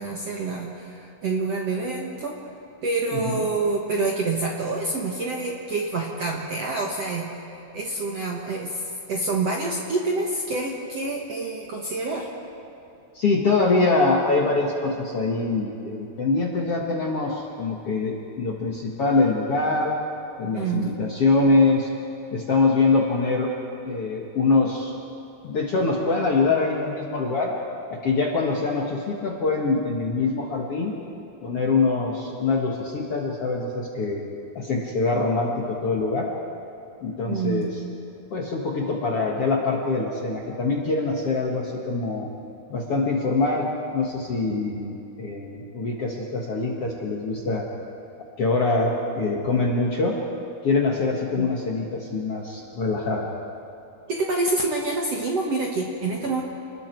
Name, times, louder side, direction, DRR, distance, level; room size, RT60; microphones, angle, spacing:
voice 1, 0.0-2.4 2.8-7.5 7.7-12.3 20.5-21.0 37.2-37.7 51.3-51.5 54.1-56.4, right 3 dB, 55° right, -1 dB, 1.8 m, -27 dB
voice 2, 3.1-3.5 13.1-19.9 20.4-21.9 22.3-23.5 23.8-24.9 25.4-27.5 27.9-31.0 31.4-34.2 34.6-36.3 37.0-37.7 38.3-42.3 42.7-43.7 43.9-47.6 48.4-50.2 50.6-53.3, left 3 dB, 50° left, -1 dB, 1.8 m, -24 dB
29.5 x 20.5 x 4.6 m, 2.8 s
omnidirectional pair, 4.7 m